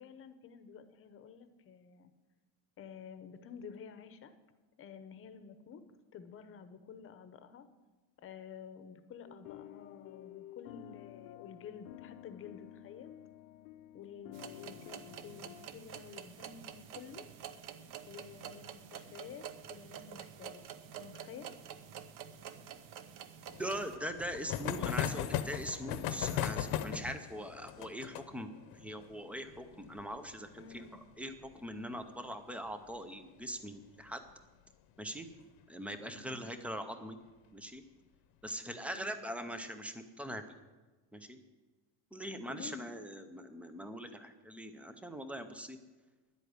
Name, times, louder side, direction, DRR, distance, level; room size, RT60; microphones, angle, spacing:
voice 1, 0.0-2.1 2.8-4.3 4.8-5.8 6.1-7.7 8.2-13.1 13.9-17.2 18.0-21.5 30.6-31.0 35.9-36.5 38.9-39.3 42.5-42.8, left 7 dB, 30° left, 10 dB, 0.8 m, -51 dB
sound 1, 9.3-15.7, left 15 dB, 85° left, 0.9 m, -52 dB
sound 2, 14.3-24.0, right 9 dB, 45° right, 0.8 m, -48 dB
sound 3, 23.5-32.7 32.9-33.0 33.3-33.4 33.7-33.8 35.2-35.4 36.1-36.5, left 10 dB, 55° left, 0.9 m, -38 dB
voice 2, 23.6-34.2 35.0-35.3 35.7-37.2 37.5-37.8 38.4-40.4 41.1-41.4 42.1-45.8, equal, 5° right, 9 dB, 0.4 m, -42 dB
10.5 x 8.2 x 9.4 m, 1.3 s
cardioid pair, 175°, 43 cm